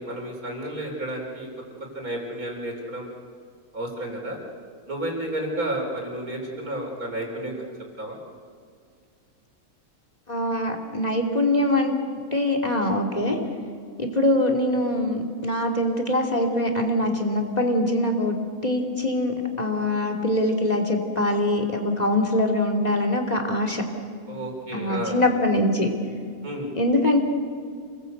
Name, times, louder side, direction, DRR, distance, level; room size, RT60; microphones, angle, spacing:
voice 1, 0.0-1.5 1.8-3.1 3.7-4.4 4.9-7.6 8.0-8.2 13.2-13.4 24.3-25.2 26.4-26.7, right 1 dB, 70° right, 1 dB, 4.7 m, -31 dB
voice 2, 10.3-12.0 12.3-13.4 14.0-18.4 18.6-23.8 24.7-25.9 26.8-27.2, left 1 dB, 25° left, 2 dB, 2.9 m, -23 dB
28.0 x 20.0 x 8.1 m, 2.2 s
omnidirectional pair, 1.6 m